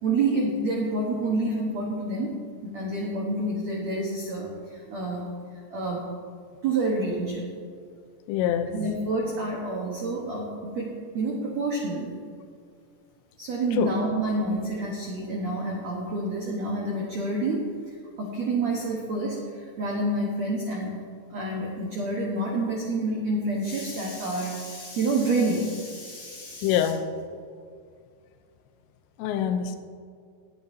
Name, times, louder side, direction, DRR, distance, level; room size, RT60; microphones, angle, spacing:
voice 1, 0.0-2.4 2.6-5.3 5.7-6.0 6.6-7.5 8.7-12.2 13.4-21.0 21.3-26.9, right 2 dB, 80° right, -2 dB, 1.5 m, -28 dB
voice 2, 8.3-8.7 13.8-13.9 26.6-27.0 29.2-29.8, left 9 dB, 85° left, 8 dB, 3.0 m, -25 dB
21.5 x 8.5 x 2.8 m, 2.2 s
omnidirectional pair, 5.2 m